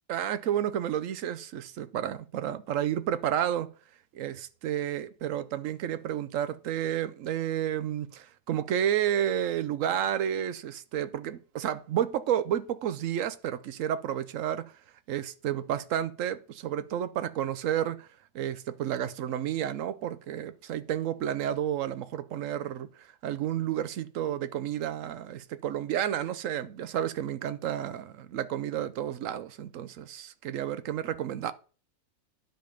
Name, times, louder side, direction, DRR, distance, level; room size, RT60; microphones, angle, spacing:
voice 1, 0.1-3.7 4.1-14.7 15.1-18.1 18.3-31.5, right 10 dB, 75° right, 1.0 m, -31 dB
10.0 x 5.2 x 5.1 m
omnidirectional pair, 1.4 m